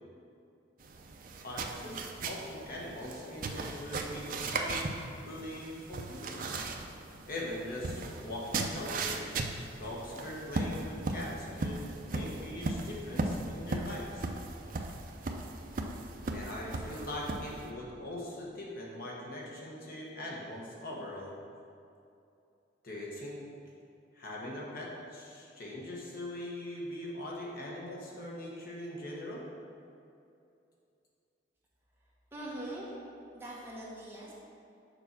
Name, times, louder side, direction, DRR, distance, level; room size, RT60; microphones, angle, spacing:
sound 1, 0.8-17.7, right 3 dB, 45° right, 0.5 m, -37 dB
voice 1, 1.4-4.9 5.3-6.5 7.2-9.3 9.8-14.2 16.3-21.3 22.8-23.4 24.1-29.4, left 1 dB, 50° left, -4 dB, 1.3 m, -41 dB
voice 2, 32.3-32.9 33.3-34.3, right 1 dB, 15° right, -6 dB, 1.2 m, -42 dB
6.9 x 4.4 x 6.0 m, 2.6 s
head